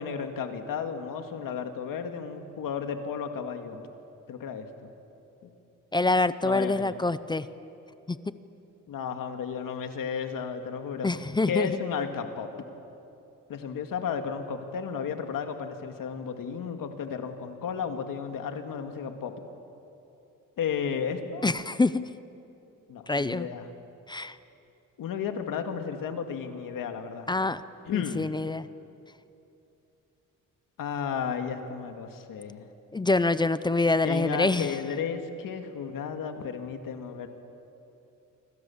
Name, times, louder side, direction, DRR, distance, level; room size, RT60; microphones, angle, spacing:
voice 1, 0.0-3.8 4.3-4.9 5.4-5.5 6.4-6.9 8.9-11.1 11.5-12.5 13.5-19.3 20.6-21.4 22.9-23.7 25.0-27.3 27.9-28.3 30.8-32.7 34.0-37.3, left 6 dB, 80° left, 6 dB, 2.2 m, -33 dB
voice 2, 5.9-7.5 8.1-8.2 11.0-11.7 21.4-22.0 23.1-23.5 24.1-24.4 27.3-27.6 27.9-28.7 32.9-34.7, left 2 dB, 15° left, 14 dB, 0.5 m, -25 dB
27.5 x 25.5 x 7.2 m, 2.8 s
wide cardioid pair, 160°, 33 cm